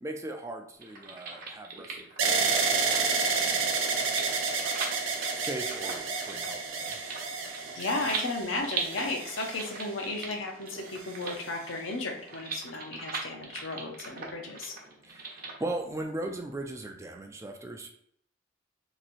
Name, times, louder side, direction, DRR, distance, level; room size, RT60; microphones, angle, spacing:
voice 1, 0.0-2.8 3.1-4.8 5.3-7.0 15.0-17.9, right 2 dB, 15° right, 3 dB, 0.4 m, -39 dB
sound 1, 0.8-15.5, right 4 dB, 45° right, 0.8 m, -40 dB
sound 2, 2.2-10.2 10.9-11.6, right 4 dB, 80° right, 0.7 m, -30 dB
voice 2, 7.7-14.7, left 2 dB, 85° left, 2 dB, 0.8 m, -34 dB
3.0 x 2.7 x 4.1 m, 0.67 s
head